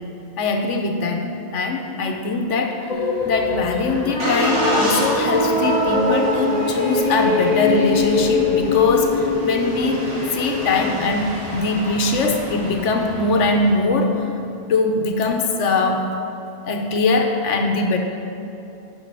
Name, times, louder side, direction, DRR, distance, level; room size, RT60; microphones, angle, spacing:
voice 1, 0.4-14.3 14.7-16.1 16.6-18.0, left 3 dB, 85° left, 4 dB, 1.2 m, -21 dB
sound 1, 2.9-11.1, left 3 dB, 40° left, 1.0 m, -22 dB
Engine starting, 3.1-13.9, equal, 75° right, 2.7 m, -31 dB
9.3 x 5.5 x 5.4 m, 2.8 s
omnidirectional pair, 1.2 m